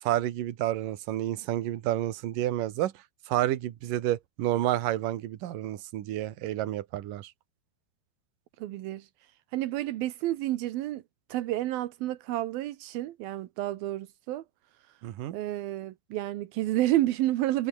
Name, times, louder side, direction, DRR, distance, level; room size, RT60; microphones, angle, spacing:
voice 1, 0.0-2.9 3.3-7.3 15.0-15.4, right 13 dB, 70° right, 2.1 m, -30 dB
voice 2, 8.6-9.1 9.5-11.0 11.3-14.4 15.3-17.7, right 15 dB, 85° right, 2.1 m, -30 dB
omnidirectional pair, 5.8 m